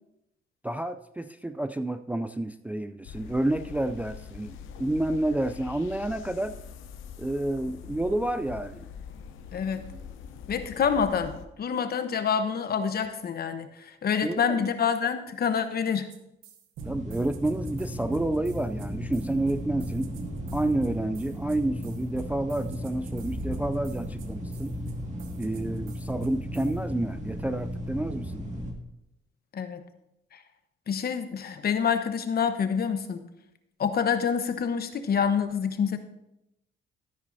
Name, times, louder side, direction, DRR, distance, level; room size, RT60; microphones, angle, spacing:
voice 1, 0.6-6.6 7.2-8.9 14.2-14.6 16.9-20.1 20.5-24.8 25.4-28.4, right 1 dB, 5° right, 10 dB, 0.3 m, -29 dB
sound 1, 3.1-11.5, left 7 dB, 80° left, 0.8 m, -43 dB
voice 2, 9.5-9.8 10.5-16.1 29.5-29.8 30.3-30.4 30.9-33.2 33.8-36.0, left 7 dB, 50° left, 9 dB, 1.0 m, -27 dB
sound 2, 16.1-16.2 16.4-26.8, right 6 dB, 85° right, 0.9 m, -46 dB
sound 3, 16.8-28.7, equal, 35° right, 1.9 m, -35 dB
13.0 x 9.8 x 2.7 m, 0.85 s
cardioid pair, 90°, 20 cm